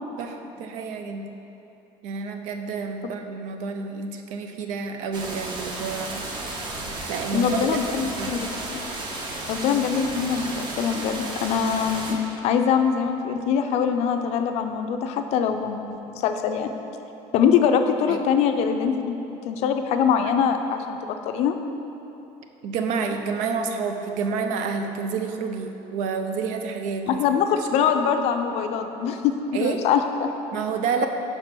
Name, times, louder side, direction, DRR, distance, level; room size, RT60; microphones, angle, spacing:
voice 1, 0.2-1.3 2.0-6.2 7.1-8.4 18.1-18.2 22.6-27.2 29.5-29.8 30.5-31.1, right 5 dB, 75° right, 5 dB, 0.6 m, -29 dB
sound 1, 5.1-12.1, right 2 dB, 40° right, 0.8 m, -33 dB
voice 2, 7.3-8.8 9.5-12.2 12.4-15.8 16.1-16.7 17.3-19.2 19.4-21.6 27.1-30.3, left 7 dB, 60° left, 6 dB, 0.4 m, -23 dB
5.3 x 4.4 x 5.9 m, 3.0 s
cardioid pair, 155°, 12 cm